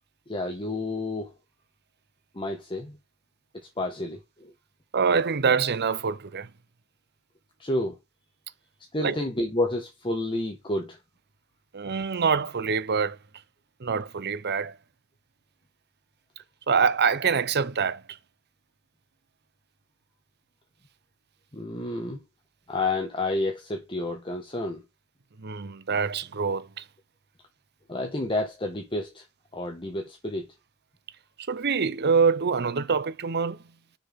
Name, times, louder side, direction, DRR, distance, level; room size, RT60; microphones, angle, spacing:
voice 1, 0.3-1.3 2.3-3.0 3.8-4.5 7.6-8.0 8.9-11.0 21.5-22.2 22.7-24.8 27.9-29.2 29.5-30.5, left 2 dB, 25° left, 1.7 m, -30 dB
voice 2, 4.9-6.5 9.0-9.2 11.7-13.2 13.8-14.8 16.7-18.0 25.4-26.9 31.4-33.6, right 5 dB, 50° right, 0.7 m, -25 dB
6.8 x 6.2 x 3.7 m
head